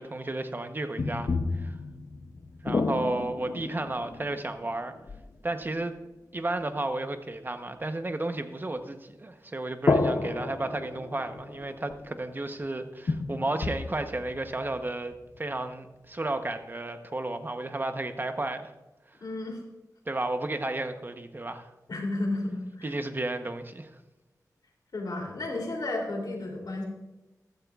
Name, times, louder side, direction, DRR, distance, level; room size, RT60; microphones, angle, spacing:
voice 1, 0.0-1.8 2.6-4.9 5.4-5.9 6.3-18.7 20.1-21.7 22.8-23.9, right 2 dB, 30° right, 8 dB, 0.9 m, -33 dB
sound 1, 1.0-5.7 9.9-12.2 12.6-12.7 13.1-15.4, left 3 dB, 60° left, 0.7 m, -31 dB
voice 2, 19.2-19.6 21.9-23.0 24.9-26.8, left 2 dB, 85° left, -1 dB, 2.9 m, -32 dB
15.0 x 13.0 x 2.4 m, 1.1 s
wide cardioid pair, 100°, 7 cm